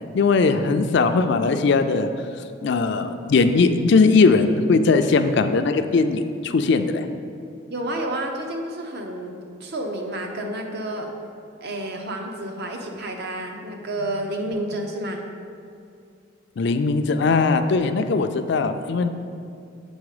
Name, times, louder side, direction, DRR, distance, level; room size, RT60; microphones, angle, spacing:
voice 1, 0.1-2.1 2.6-7.1 16.6-19.1, left 4 dB, 55° left, 8 dB, 0.3 m, -19 dB
voice 2, 7.7-9.3 9.6-11.1 11.6-15.2, right 1 dB, 50° right, 2 dB, 0.7 m, -30 dB
7.1 x 4.2 x 4.9 m, 2.4 s
head